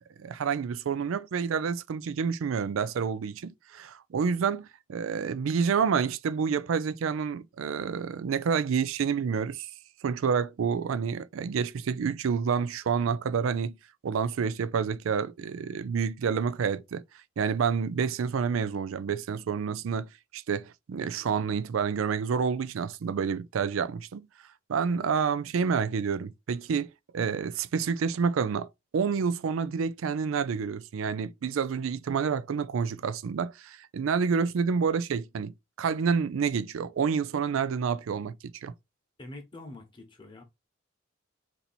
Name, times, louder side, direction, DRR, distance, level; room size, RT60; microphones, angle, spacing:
voice 1, 0.2-9.7 10.0-13.7 14.0-17.0 17.4-24.3 24.7-38.7, right 6 dB, 85° right, 0.4 m, -29 dB
voice 2, 39.2-40.4, left 2 dB, 25° left, 1.0 m, -45 dB
4.0 x 2.7 x 4.3 m
head